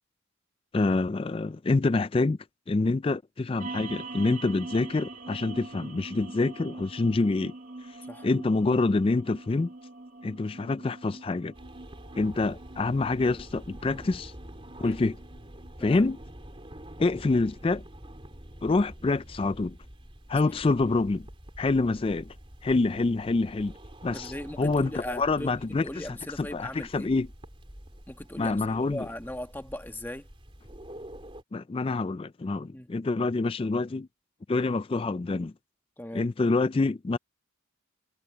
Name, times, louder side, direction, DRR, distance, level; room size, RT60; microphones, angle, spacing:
voice 1, 0.7-2.4 2.7-7.5 7.8-8.0 8.2-9.7 10.2-11.5 12.2-14.3 14.8-15.2 15.8-16.2 17.0-17.8 18.6-19.8 20.3-21.3 21.6-22.3 22.6-23.7 24.0-24.3 24.6-26.1 26.4-27.3 28.4-29.1 31.5-34.1 34.5-35.5 36.1-37.2, left 3 dB, 25° left, 0.3 m, -26 dB
sound 1, 3.6-18.2, right 2 dB, 40° right, 2.5 m, -44 dB
sound 2, 11.5-31.4, right 1 dB, 25° right, 3.2 m, -47 dB
voice 2, 24.1-27.1 28.1-30.3 32.7-32.9 36.0-36.3, left 1 dB, 10° left, 1.3 m, -39 dB
head